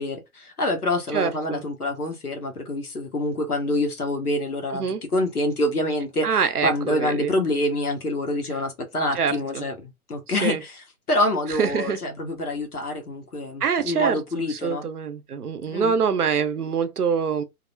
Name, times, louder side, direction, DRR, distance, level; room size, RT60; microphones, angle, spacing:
voice 1, 0.0-4.9 5.1-14.8 15.7-15.9, left 1 dB, 90° left, 1.2 m, -26 dB
voice 2, 1.1-1.6 4.7-5.0 6.2-7.3 9.1-9.6 10.4-10.6 11.6-12.0 13.6-17.4, right 6 dB, 85° right, 0.7 m, -25 dB
2.8 x 2.0 x 2.6 m
figure-of-eight pair, 125°, 44 cm